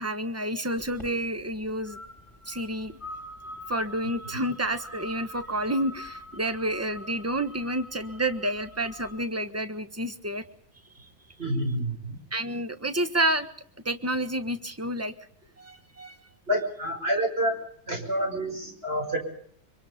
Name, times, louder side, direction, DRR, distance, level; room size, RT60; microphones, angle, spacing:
voice 1, 0.0-2.0 2.4-2.9 3.7-10.4 10.9-11.1 12.3-13.5 13.8-15.1 15.6-16.2, right 1 dB, 10° right, 10 dB, 1.1 m, -29 dB
sound 1, 0.8-9.2, left 1 dB, 15° left, 3.0 m, -45 dB
voice 2, 11.4-12.2 16.5-17.6 17.8-19.2, equal, 30° right, 2 dB, 6.4 m, -28 dB
25.5 x 24.0 x 5.4 m, 0.62 s
omnidirectional pair, 2.1 m